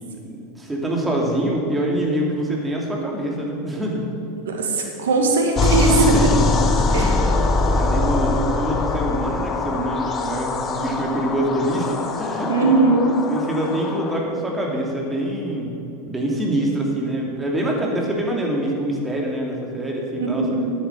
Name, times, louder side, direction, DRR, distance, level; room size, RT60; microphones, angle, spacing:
voice 1, 0.3-4.1 6.1-6.4 6.9-12.8 13.3-15.7 16.1-20.4, right 1 dB, 15° right, -1 dB, 2.9 m, -25 dB
voice 2, 4.5-6.3 6.9-7.2 12.5-13.2 20.2-20.7, right 3 dB, 75° right, 2 dB, 2.1 m, -19 dB
sound 1, 5.6-14.2, left 3 dB, 30° left, 1.1 m, -22 dB
10.5 x 9.1 x 7.1 m, 3.0 s
hypercardioid pair, 85°, 0 cm